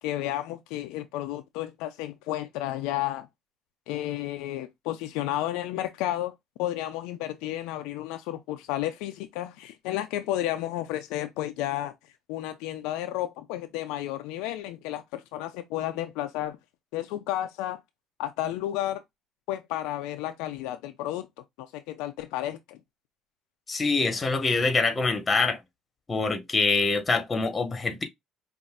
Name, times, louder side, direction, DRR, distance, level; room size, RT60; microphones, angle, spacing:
voice 1, 0.0-3.3 3.9-6.3 6.6-11.9 12.3-16.6 16.9-17.8 18.2-19.0 19.5-21.3 21.6-22.8, left 13 dB, 85° left, 0.5 m, -32 dB
voice 2, 23.7-25.6 26.1-28.0, left 3 dB, 25° left, 1.3 m, -25 dB
5.3 x 2.6 x 2.4 m
supercardioid pair, 90°, 0 cm